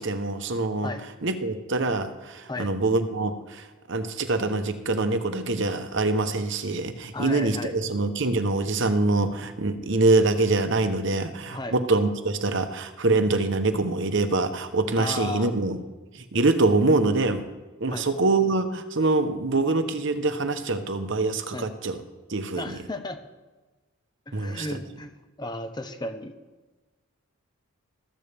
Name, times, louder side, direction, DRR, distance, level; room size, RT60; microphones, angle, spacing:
voice 1, 0.0-0.9 1.2-3.6 3.9-15.8 16.1-17.5 17.8-22.0 22.3-22.7 24.3-24.7, right 3 dB, 55° right, 9 dB, 0.9 m, -24 dB
voice 2, 7.1-7.8 11.4-11.8 15.0-15.5 17.9-18.0 21.5-21.7 22.5-23.2 24.3-25.1 25.4-26.3, left 2 dB, 20° left, 8 dB, 0.8 m, -34 dB
14.0 x 14.0 x 3.5 m, 1.2 s
head